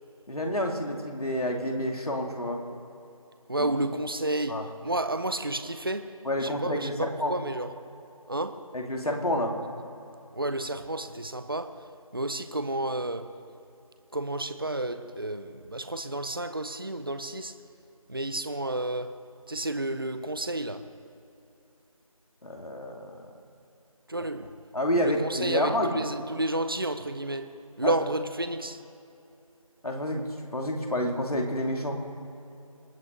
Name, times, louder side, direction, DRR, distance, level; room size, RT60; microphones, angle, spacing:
voice 1, 0.3-2.6 3.6-3.7 4.5-4.6 6.2-7.3 8.7-9.6 22.4-23.3 24.7-26.0 27.8-27.9 29.8-32.0, left 1 dB, 85° left, 2.6 m, -29 dB
voice 2, 3.5-7.7 8.3-8.7 10.3-13.4 14.1-17.6 18.1-19.2 19.5-20.9 24.1-24.5 25.0-28.8, right 1 dB, 40° right, 0.7 m, -31 dB
26.5 x 9.3 x 5.3 m
figure-of-eight pair, 175°, 19 cm